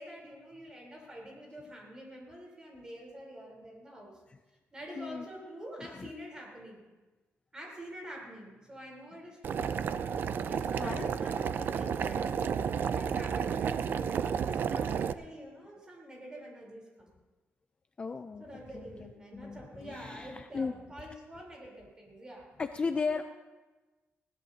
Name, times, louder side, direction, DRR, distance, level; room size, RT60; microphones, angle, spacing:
voice 1, 0.0-4.2 4.7-6.8 7.5-9.7 10.3-12.6 12.9-17.1 18.4-22.5 23.1-23.2, equal, 20° right, -2 dB, 3.8 m, -47 dB
voice 2, 5.0-5.3 5.8-6.1 10.8-11.1 18.0-18.4 18.7-20.7 22.6-23.2, left 4 dB, 25° left, 8 dB, 0.4 m, -36 dB
Boiling, 9.4-15.1, right 7 dB, 50° right, 0.4 m, -31 dB
20.5 x 16.5 x 2.8 m, 1.2 s
wide cardioid pair, 160°, 4 cm